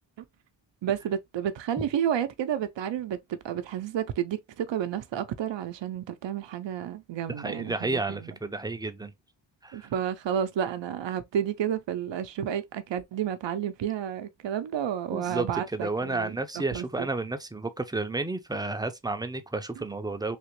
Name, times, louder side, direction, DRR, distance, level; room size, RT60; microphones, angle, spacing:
voice 1, 0.8-8.3 9.7-16.4 16.7-17.1, right 9 dB, 75° right, 0.6 m, -31 dB
voice 2, 7.4-9.1 9.6-9.9 15.1-15.5 15.7-20.4, right 2 dB, 10° right, 0.4 m, -31 dB
3.5 x 2.9 x 3.0 m
wide cardioid pair, 170°, 44 cm